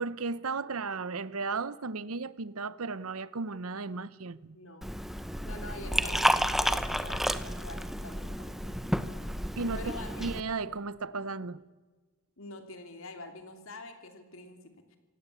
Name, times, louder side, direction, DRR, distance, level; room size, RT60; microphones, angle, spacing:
voice 1, 0.0-4.6 9.6-9.9 10.2-11.6, right 4 dB, 75° right, 0.9 m, -35 dB
voice 2, 4.5-4.9 5.4-9.3 9.8-10.3 12.4-15.0, left 2 dB, 65° left, 2.9 m, -46 dB
Liquid, 4.8-10.4, equal, ahead, 0.8 m, -31 dB
26.5 x 17.0 x 8.3 m
head